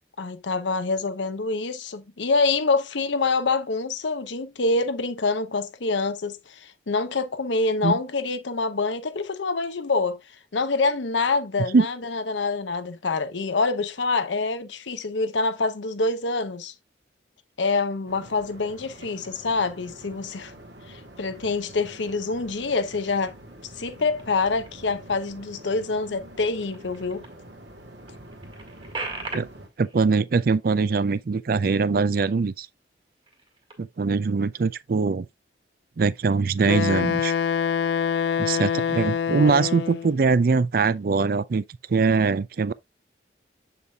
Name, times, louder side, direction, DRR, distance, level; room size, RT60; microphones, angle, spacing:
voice 1, 0.2-10.2 10.5-16.7 17.6-20.5 20.9-23.4 23.8-27.2, left 3 dB, 80° left, 0.8 m, -26 dB
sound 1, 18.1-29.7, right 1 dB, 75° right, 2.0 m, -46 dB
sound 2, 19.0-19.6 20.1-20.8 21.2-21.9 22.2-27.4 27.8-27.9 28.1-32.1 32.4-32.6 33.1-34.1, right 3 dB, 30° right, 1.7 m, -43 dB
voice 2, 29.8-32.7 33.8-35.3 36.0-37.3 38.4-41.6 41.9-42.7, right 4 dB, 50° right, 0.4 m, -22 dB
Wind instrument woodwind instrument, 36.6-40.1, left 7 dB, 65° left, 0.3 m, -25 dB
7.2 x 6.8 x 2.3 m
head